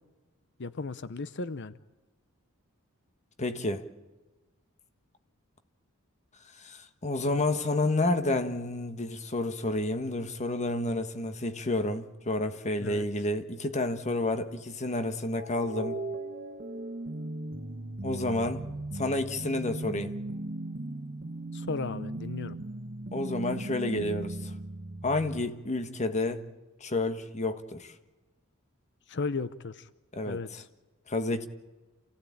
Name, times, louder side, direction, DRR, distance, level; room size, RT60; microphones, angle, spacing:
voice 1, 0.6-1.7 12.8-13.1 21.5-22.6 29.1-29.9 30.3-30.7, left 4 dB, 55° left, 14 dB, 0.7 m, -35 dB
voice 2, 3.4-3.8 6.6-16.0 18.0-18.6 18.9-20.2 23.1-24.5 25.0-26.4 26.8-27.9 30.1-30.6 31.1-31.5, left 2 dB, 30° left, 9 dB, 1.4 m, -30 dB
sound 1, 15.3-25.5, right 1 dB, 40° right, 1.4 m, -37 dB
28.0 x 16.0 x 8.6 m, 1.2 s
head